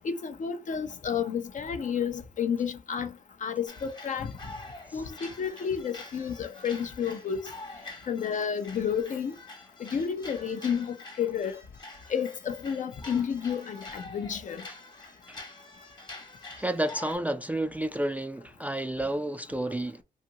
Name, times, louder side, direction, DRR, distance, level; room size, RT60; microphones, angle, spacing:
voice 1, 0.0-3.1 3.4-4.3 4.9-7.4 8.1-9.4 9.8-11.6 12.1-14.6, left 7 dB, 50° left, 0.6 m, -31 dB
sound 1, 3.7-17.2, left 2 dB, 25° left, 1.1 m, -46 dB
voice 2, 16.6-20.0, right 1 dB, 10° right, 0.3 m, -31 dB
2.7 x 2.4 x 2.8 m
cardioid pair, 60°, 16 cm